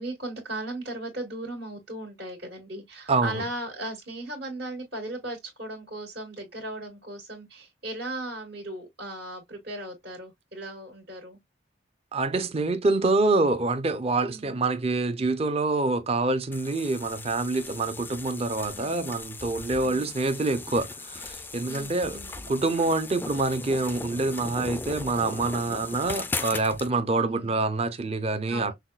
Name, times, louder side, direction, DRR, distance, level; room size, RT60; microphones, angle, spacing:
voice 1, 0.0-11.4 14.2-14.6 18.7-18.9 21.7-22.5 27.2-27.6 28.5-28.7, right 1 dB, 65° right, 1.9 m, -37 dB
voice 2, 3.1-3.4 12.1-22.2 22.5-28.7, right 3 dB, 35° right, 0.6 m, -26 dB
sound 1, 16.5-26.9, left 3 dB, 10° left, 0.3 m, -38 dB
5.8 x 2.2 x 2.3 m
head